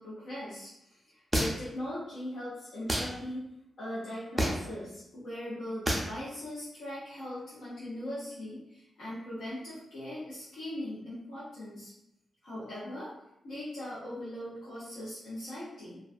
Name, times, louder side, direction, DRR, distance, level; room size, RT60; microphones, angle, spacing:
voice 1, 0.0-3.5 3.8-11.9 12.4-13.1 13.4-16.0, left 1 dB, 80° left, -11 dB, 0.8 m, -40 dB
sound 1, 1.3-1.8 2.9-3.1 4.4-4.7 5.9-6.1, right 1 dB, 10° right, 0.4 m, -28 dB
2.3 x 2.2 x 2.4 m, 0.82 s
wide cardioid pair, 115°, 0 cm